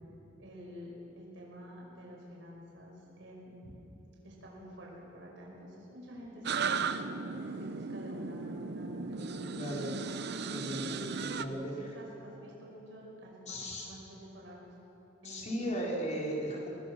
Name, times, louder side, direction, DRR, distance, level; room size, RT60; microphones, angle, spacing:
voice 1, 0.4-3.8 4.2-7.1 7.6-10.0 10.7-14.7 15.2-15.9, equal, 75° right, -3 dB, 5.5 m, -49 dB
sound 1, 6.4-11.4, right 5 dB, 60° right, 0.8 m, -36 dB
voice 2, 9.5-9.9 10.5-11.1 11.4-11.9 13.5-13.9 15.2-16.7, equal, 40° left, -3 dB, 4.8 m, -36 dB
25.0 x 19.5 x 6.3 m, 3.0 s
head